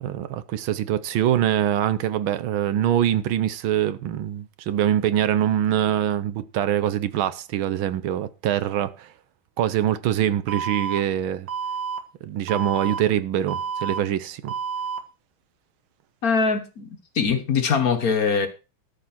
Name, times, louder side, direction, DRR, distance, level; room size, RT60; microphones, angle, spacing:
voice 1, 0.0-9.1 9.6-11.5 12.2-14.5, right 11 dB, 80° right, 1.6 m, -24 dB
Alarm, 10.5-11.0 11.5-12.0 12.5-13.0 13.5-14.0 14.5-15.0, right 6 dB, 65° right, 2.2 m, -29 dB
voice 2, 16.2-18.5, left 5 dB, 50° left, 1.5 m, -22 dB
13.5 x 5.4 x 5.9 m
omnidirectional pair, 2.2 m